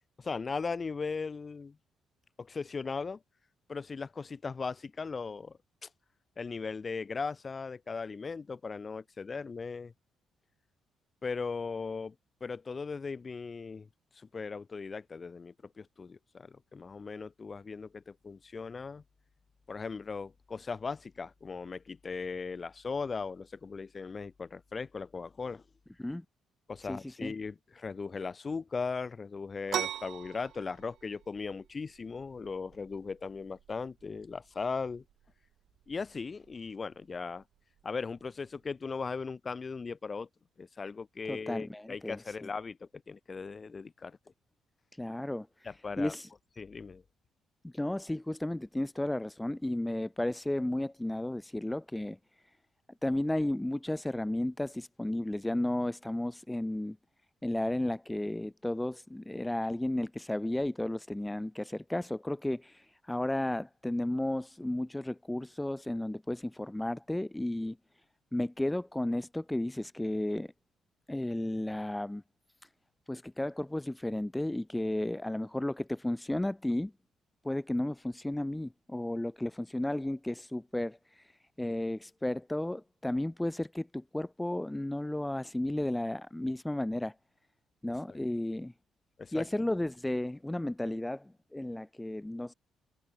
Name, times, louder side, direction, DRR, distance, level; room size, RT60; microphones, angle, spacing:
voice 1, 0.2-1.8 2.4-3.2 3.7-5.6 6.4-9.9 11.2-12.1 12.4-13.9 14.2-19.0 19.7-25.6 26.7-35.0 35.9-37.4 37.8-40.3 40.6-44.2 45.6-46.1 46.6-47.0 89.2-89.5, left 4 dB, 35° left, 2.6 m, -38 dB
voice 2, 26.8-27.3 41.3-42.5 44.9-45.7 46.0-46.3 47.6-52.6 53.0-57.0 57.4-67.8 68.3-70.5 71.1-72.2 72.6-72.7 73.1-76.9 77.4-87.2 87.8-88.7 89.3-92.5, left 1 dB, 10° left, 0.9 m, -33 dB
sound 1, 29.7-39.1, right 11 dB, 75° right, 1.8 m, -44 dB
cardioid pair, 90°, 0 cm